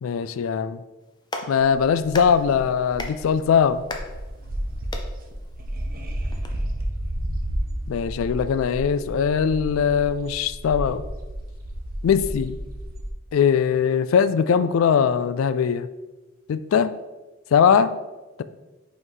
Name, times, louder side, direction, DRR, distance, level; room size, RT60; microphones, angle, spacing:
voice 1, 0.0-0.8 1.5-3.8 7.9-11.0 12.0-12.6 13.3-15.9 16.5-16.9 17.5-18.0, left 7 dB, 75° left, 13 dB, 0.3 m, -21 dB
Clapping, 1.0-6.5, left 2 dB, 20° left, 0.6 m, -39 dB
sound 1, 1.6-13.1, equal, 45° right, 0.7 m, -32 dB
5.4 x 3.2 x 5.4 m, 1.1 s
head